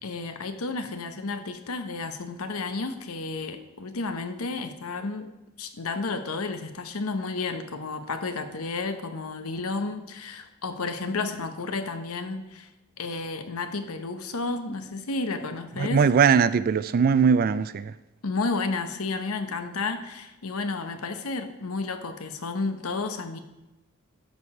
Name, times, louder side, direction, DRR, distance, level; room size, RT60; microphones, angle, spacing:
voice 1, 0.0-12.7 13.0-16.1 18.2-23.4, left 3 dB, 85° left, 0.9 m, -32 dB
voice 2, 15.8-17.9, right 6 dB, 45° right, 0.3 m, -20 dB
13.0 x 4.9 x 4.9 m
head